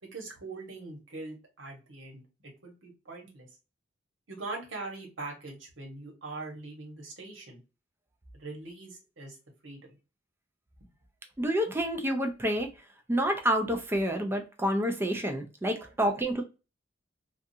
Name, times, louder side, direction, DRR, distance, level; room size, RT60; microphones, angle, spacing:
voice 1, 0.0-3.5 4.3-7.6 8.3-9.4 9.6-9.8 15.7-15.9, right 3 dB, 70° right, 1.1 m, -42 dB
voice 2, 11.4-12.7 13.1-16.4, equal, 10° right, 0.4 m, -28 dB
2.4 x 2.3 x 2.6 m
head